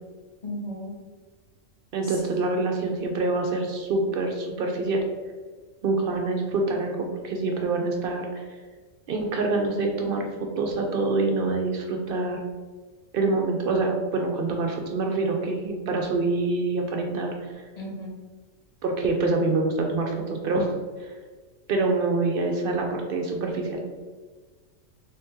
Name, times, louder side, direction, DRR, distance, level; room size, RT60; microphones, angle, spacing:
voice 1, 0.4-1.0 2.0-2.6 17.7-18.2, left 1 dB, 35° left, -3 dB, 1.0 m, -36 dB
voice 2, 1.9-5.0 5.8-8.4 9.1-12.4 13.1-17.5 18.8-20.7 21.0-21.1 21.7-23.8, right 3 dB, 65° right, 2 dB, 0.5 m, -26 dB
3.4 x 2.8 x 3.5 m, 1.4 s
omnidirectional pair, 1.3 m